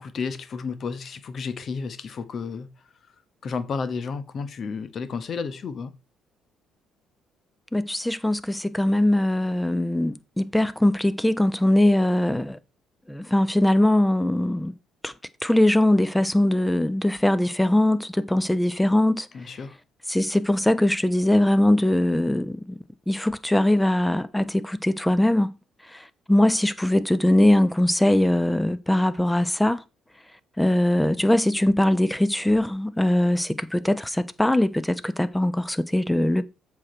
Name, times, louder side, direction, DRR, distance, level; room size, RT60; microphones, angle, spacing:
voice 1, 0.0-2.7 3.4-5.9 19.3-19.8, left 5 dB, 50° left, 1.2 m, -32 dB
voice 2, 7.7-12.6 13.1-14.7 15.0-15.1 15.4-19.3 20.1-22.8 23.1-25.6 25.9-29.8 30.6-36.4, left 1 dB, 5° left, 0.9 m, -21 dB
7.6 x 5.9 x 4.5 m
hypercardioid pair, 50°, 0 cm